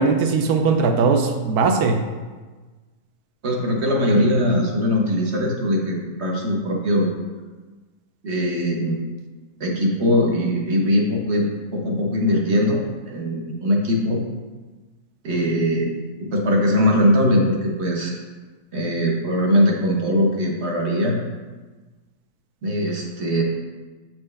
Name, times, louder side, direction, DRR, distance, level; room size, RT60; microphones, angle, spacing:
voice 1, 0.0-2.0, right 4 dB, 75° right, 5 dB, 1.1 m, -19 dB
voice 2, 3.4-7.1 8.2-9.0 9.6-14.2 15.2-15.9 16.2-18.1 18.7-21.2 22.6-23.4, equal, 50° right, 0 dB, 1.0 m, -21 dB
7.2 x 4.6 x 3.3 m, 1.3 s
omnidirectional pair, 1.7 m